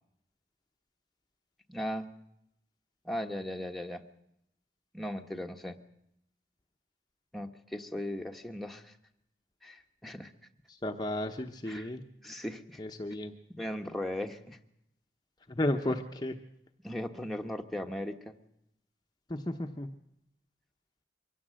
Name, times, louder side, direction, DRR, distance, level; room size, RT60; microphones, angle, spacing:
voice 1, 1.7-2.1 3.0-4.0 4.9-5.8 7.3-9.0 9.6-10.3 11.7-11.9 12.2-12.8 13.6-14.6 16.8-18.4, left 1 dB, ahead, 3 dB, 1.1 m, -37 dB
voice 2, 10.7-12.0 12.8-13.3 15.5-16.4 19.3-19.9, left 1 dB, 20° left, 4 dB, 0.9 m, -33 dB
23.5 x 16.5 x 7.6 m, 0.78 s
head